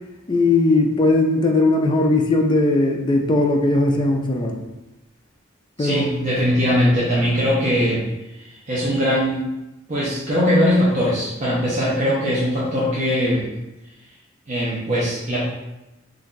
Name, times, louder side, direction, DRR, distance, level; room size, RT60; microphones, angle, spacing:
voice 1, 0.3-4.6 5.8-6.1, left 2 dB, 25° left, 2 dB, 0.3 m, -18 dB
voice 2, 5.8-8.0 8.3-9.4 9.9-13.4 14.5-15.4, equal, 35° right, -8 dB, 0.6 m, -20 dB
2.6 x 2.3 x 3.7 m, 0.97 s
head